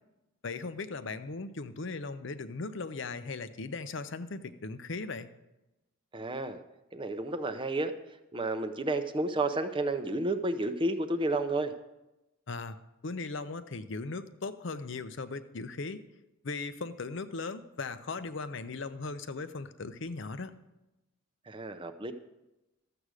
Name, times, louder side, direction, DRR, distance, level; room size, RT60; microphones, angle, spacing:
voice 1, 0.4-5.3 12.5-12.8 13.0-16.0 16.4-20.5, left 3 dB, 60° left, 12 dB, 0.6 m, -38 dB
voice 2, 6.1-6.6 6.9-7.9 8.3-11.7 21.5-22.1, right 2 dB, 25° right, 9 dB, 0.6 m, -31 dB
13.0 x 7.8 x 4.9 m, 0.98 s
head